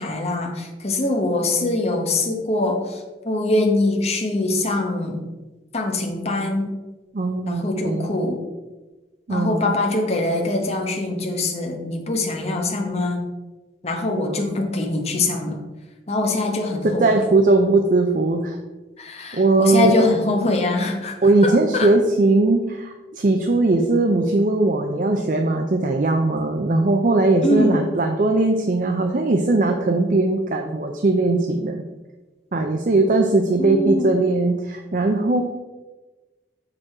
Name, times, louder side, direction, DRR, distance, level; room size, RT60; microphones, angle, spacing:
voice 1, 0.0-5.2 5.7-6.7 7.4-8.4 9.3-13.2 13.8-15.6 16.1-17.2 19.0-21.1 21.4-21.9 27.4-27.9 33.6-34.1, left 2 dB, 35° left, 2 dB, 1.0 m, -23 dB
voice 2, 7.1-8.1 9.3-9.7 14.2-14.4 17.0-18.6 19.3-19.9 21.2-31.8 32.5-35.4, right 2 dB, 45° right, 4 dB, 0.5 m, -19 dB
6.1 x 4.9 x 4.8 m, 1.2 s
head